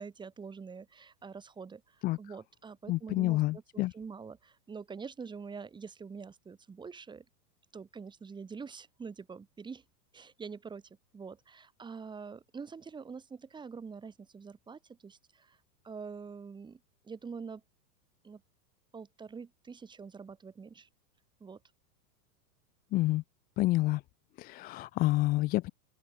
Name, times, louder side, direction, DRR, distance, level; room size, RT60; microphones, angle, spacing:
voice 1, 0.0-7.2 7.7-9.8 10.1-15.6 15.8-17.6 18.2-18.4 18.9-20.9 21.4-21.6, right 5 dB, 10° right, 7.5 m, -45 dB
voice 2, 2.9-3.9 22.9-23.2 23.6-24.0 24.4-25.7, left 18 dB, 20° left, 1.0 m, -28 dB
open air
supercardioid pair, 170°, 48 cm